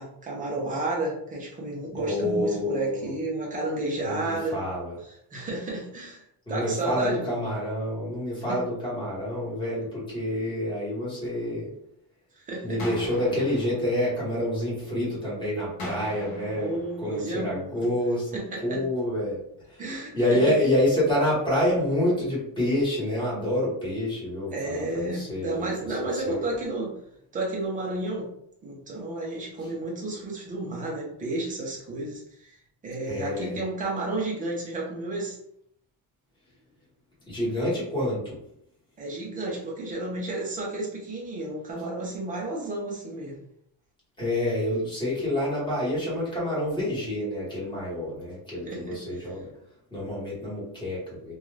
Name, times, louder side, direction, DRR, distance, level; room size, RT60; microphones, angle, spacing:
voice 1, 0.0-4.6 5.0-7.2 8.5-8.6 12.4-12.8 16.5-17.9 18.3-18.8 19.8-20.5 24.5-26.9 27.3-28.3 28.6-32.5 32.8-35.4 39.0-43.4 48.7-49.2, right 2 dB, 20° right, -2 dB, 0.4 m, -32 dB
voice 2, 1.9-3.1 4.0-4.9 6.5-11.7 12.6-19.4 19.7-19.8 20.1-26.4 33.1-33.6 37.3-38.4 44.2-49.5 49.9-51.3, left 1 dB, 10° left, -7 dB, 1.1 m, -28 dB
sound 1, 12.8-14.9 15.8-17.9, left 1 dB, 35° left, 0.7 m, -40 dB
2.4 x 2.3 x 3.1 m, 0.73 s
cardioid pair, 175°, 49 cm